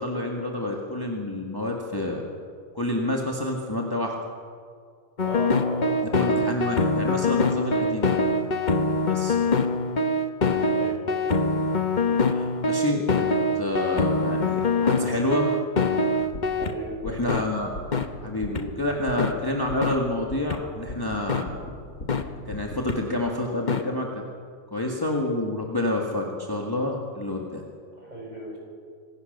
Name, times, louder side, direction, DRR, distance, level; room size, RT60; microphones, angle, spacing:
voice 1, 0.0-2.2 2.7-4.1 6.1-8.2 9.0-9.4 12.2-13.3 13.6-15.5 17.0-17.7 18.2-21.6 22.5-24.1 24.7-27.6, left 1 dB, 15° left, 0 dB, 1.9 m, -28 dB
sound 1, 5.2-16.7 17.3-17.4 17.9-18.1 18.6-18.7 19.2-19.3 19.8-20.0 20.5-20.6 21.3-21.4 22.1-22.2 22.9-23.0 23.7-23.8, left 3 dB, 40° left, 1.2 m, -24 dB
voice 2, 5.2-6.2 10.7-11.2 16.6-17.0 28.0-28.6, right 1 dB, 30° right, -3 dB, 6.9 m, -36 dB
sound 2, 16.1-22.7, left 1 dB, 85° left, 3.0 m, -41 dB
25.5 x 16.5 x 6.8 m, 2.1 s
omnidirectional pair, 1.3 m